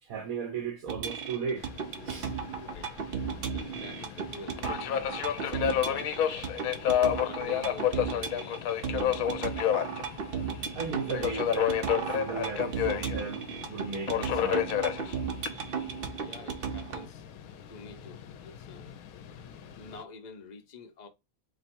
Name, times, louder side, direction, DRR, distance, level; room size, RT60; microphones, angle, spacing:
voice 1, 0.0-1.7 2.0-2.3 10.7-14.8, right 5 dB, 70° right, 1.3 m, -36 dB
sound 1, 0.9-17.1, right 6 dB, 50° right, 0.7 m, -36 dB
sound 2, 1.2-20.0, left 1 dB, 15° left, 1.4 m, -56 dB
Subway metro underground, 1.6-20.0, left 10 dB, 75° left, 1.0 m, -32 dB
voice 2, 2.6-3.0 3.5-4.8 5.4-6.1 6.9-10.0 16.2-17.2 17.7-18.9 19.8-21.1, left 4 dB, 40° left, 0.7 m, -47 dB
3.3 x 3.0 x 4.3 m
omnidirectional pair, 1.5 m